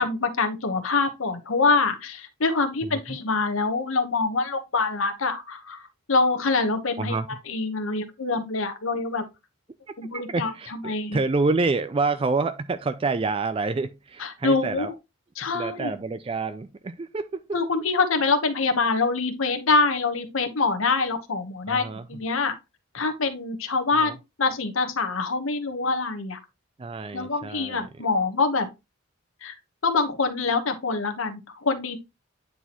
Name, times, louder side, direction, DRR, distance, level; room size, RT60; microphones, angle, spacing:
voice 1, 0.0-9.2 10.0-11.2 14.2-14.9 15.4-15.9 17.5-21.8 22.1-22.5 22.9-26.4 27.1-28.7 29.4-29.5 29.8-32.0, left 4 dB, 70° left, 1.1 m, -25 dB
voice 2, 2.8-3.2 7.0-7.3 10.1-14.9 15.5-17.6 21.7-22.2 23.9-24.2 26.8-27.9, right 3 dB, 25° right, 0.3 m, -28 dB
9.2 x 4.2 x 2.9 m
head